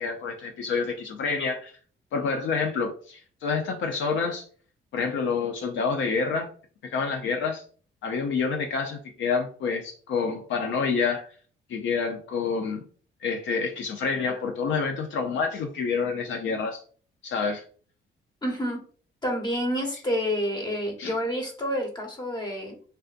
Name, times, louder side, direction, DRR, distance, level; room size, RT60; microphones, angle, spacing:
voice 1, 0.0-1.7 2.1-4.4 4.9-6.5 6.8-7.6 8.0-11.3 11.7-12.8 13.2-16.8 17.2-17.6 21.0-21.1, left 5 dB, 70° left, 3 dB, 0.5 m, -28 dB
voice 2, 18.4-18.8 19.2-22.8, equal, 20° left, 1 dB, 1.1 m, -28 dB
3.4 x 2.5 x 2.4 m, 0.43 s
cardioid pair, 90°, 20 cm